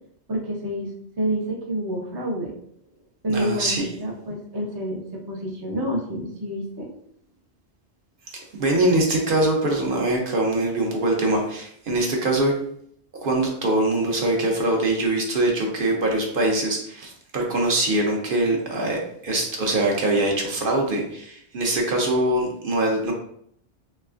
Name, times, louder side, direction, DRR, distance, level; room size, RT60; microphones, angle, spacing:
voice 1, 0.3-0.9 1.2-2.5 3.2-5.0 5.3-6.9, equal, 30° right, -1 dB, 0.5 m, -28 dB
voice 2, 3.3-3.9 8.6-12.5 13.2-23.1, right 1 dB, 55° right, 0 dB, 0.8 m, -23 dB
3.3 x 3.1 x 2.4 m, 0.68 s
omnidirectional pair, 1.1 m